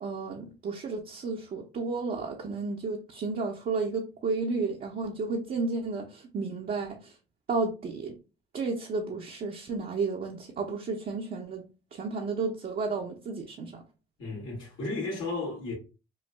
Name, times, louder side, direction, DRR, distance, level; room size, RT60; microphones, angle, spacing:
voice 1, 0.0-7.1 7.5-8.2 8.5-11.6 11.9-13.8, right 4 dB, 50° right, 0.7 m, -32 dB
voice 2, 14.2-15.7, left 3 dB, 80° left, 1.9 m, -34 dB
5.4 x 2.3 x 2.2 m
cardioid pair, 90°, 20 cm